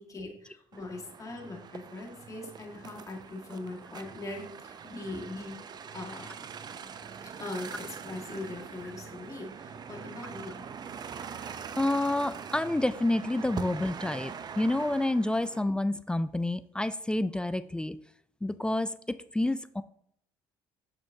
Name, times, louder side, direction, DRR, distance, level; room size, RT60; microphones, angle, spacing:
voice 1, 0.0-5.6 5.9-6.3 7.4-10.7, left 2 dB, 35° left, 0 dB, 1.7 m, -41 dB
sound 1, 0.7-15.6, right 6 dB, 45° right, 0.5 m, -43 dB
voice 2, 11.4-18.0 18.4-19.8, left 1 dB, 10° left, 14 dB, 0.3 m, -29 dB
6.3 x 6.1 x 2.7 m, 0.69 s
supercardioid pair, 70°, 10 cm